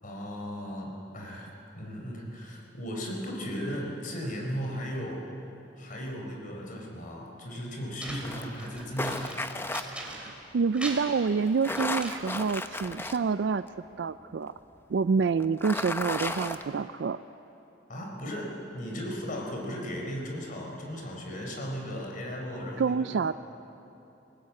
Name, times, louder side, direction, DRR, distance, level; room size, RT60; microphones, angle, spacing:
voice 1, 0.0-5.3 5.8-9.4 17.9-23.2, equal, 50° left, 0 dB, 4.4 m, -36 dB
sound 1, 8.0-10.5 10.7-12.6, right 1 dB, 5° right, 3.0 m, -41 dB
sound 2, 8.2-9.8 11.5-13.2 13.7-13.8 15.4-16.6, left 2 dB, 15° left, 0.8 m, -33 dB
voice 2, 10.0-13.6 14.0-14.5 14.9-17.2 22.8-23.3, right 5 dB, 70° right, 13 dB, 0.4 m, -27 dB
20.5 x 18.5 x 8.5 m, 3.0 s
head